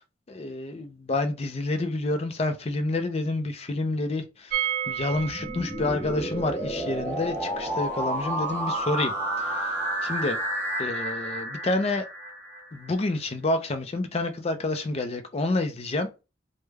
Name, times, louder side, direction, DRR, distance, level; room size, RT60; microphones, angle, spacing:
voice 1, 0.3-4.6 4.9-9.1 9.4-10.4 10.8-12.1 12.7-16.1, left 2 dB, 35° left, 0.4 m, -28 dB
sound 1, 4.5-10.3 10.5-10.6 10.9-11.0, right 9 dB, 55° right, 0.4 m, -35 dB
sound 2, 5.0-12.9, right 1 dB, 10° left, 0.8 m, -31 dB
3.3 x 2.1 x 3.2 m
head